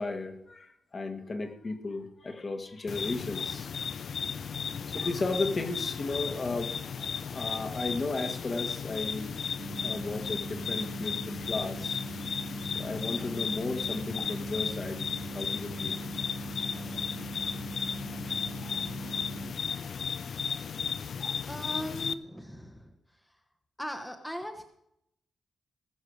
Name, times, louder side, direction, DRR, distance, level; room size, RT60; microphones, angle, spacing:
voice 1, 0.0-3.7 4.5-9.4 9.8-12.0 12.7-15.1 15.3-16.0, left 3 dB, 35° left, 5 dB, 1.7 m, -35 dB
sound 1, 2.9-22.1, left 6 dB, 60° left, 0.5 m, -35 dB
sound 2, 9.6-19.5, right 4 dB, 40° right, 0.6 m, -42 dB
voice 2, 21.5-22.9 23.8-24.6, equal, 5° left, 5 dB, 1.1 m, -38 dB
19.0 x 6.6 x 6.4 m, 0.78 s
cardioid pair, 105°, 0 cm